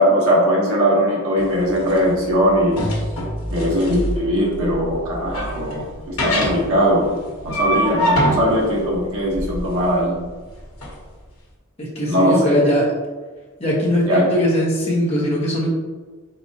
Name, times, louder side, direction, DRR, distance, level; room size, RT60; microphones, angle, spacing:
voice 1, 0.0-3.0 3.5-7.1 7.4-10.1 12.1-12.6 14.0-14.3, equal, 70° right, -5 dB, 1.0 m, -19 dB
sound 1, 1.4-10.9, equal, 80° left, 1.1 m, -25 dB
voice 2, 11.8-12.9 13.6-15.7, equal, 30° left, -5 dB, 1.1 m, -20 dB
4.2 x 3.8 x 2.8 m, 1.3 s
head